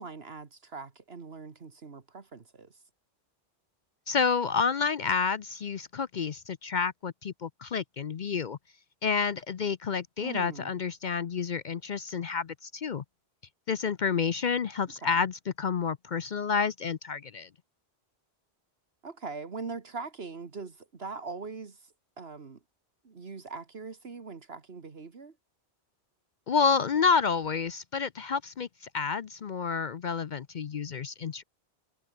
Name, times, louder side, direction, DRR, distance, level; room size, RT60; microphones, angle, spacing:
voice 1, 0.0-2.8 10.2-10.8 15.0-15.2 19.0-22.6 23.0-25.3, right 4 dB, 65° right, 1.9 m, -41 dB
voice 2, 4.1-8.6 9.0-13.0 13.7-17.5 26.5-28.7 28.9-31.4, left 5 dB, 50° left, 0.7 m, -29 dB
omnidirectional pair, 1.1 m